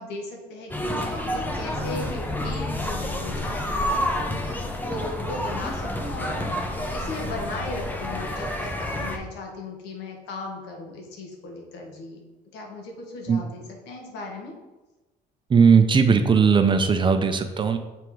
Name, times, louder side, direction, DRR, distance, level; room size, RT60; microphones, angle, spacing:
voice 1, 0.0-12.2 12.5-14.5, left 2 dB, 85° left, 1 dB, 1.4 m, -37 dB
sound 1, 0.7-9.2, left 1 dB, 10° left, 0.7 m, -29 dB
voice 2, 15.5-17.8, right 5 dB, 30° right, 7 dB, 0.5 m, -18 dB
5.9 x 3.5 x 4.6 m, 1.1 s
cardioid pair, 110°, 17 cm